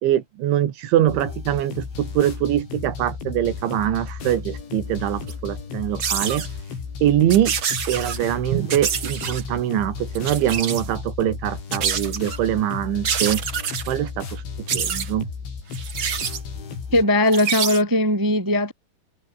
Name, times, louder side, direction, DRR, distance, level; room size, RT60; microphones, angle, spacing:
voice 1, 0.0-6.5 7.0-7.6 7.9-13.4 13.9-14.4 14.7-15.3, right 12 dB, 80° right, 4.4 m, -23 dB
sound 1, 1.1-17.0, left 5 dB, 80° left, 8.4 m, -34 dB
sound 2, 5.3-5.4 6.0-6.5 7.3-8.2 8.7-9.4 10.1-10.9 11.7-12.4 13.0-13.9 14.7-15.1 15.7-16.4 17.3-17.8, right 7 dB, 55° right, 1.4 m, -26 dB
voice 2, 16.9-18.7, left 1 dB, 10° right, 1.1 m, -19 dB
omnidirectional pair, 5.3 m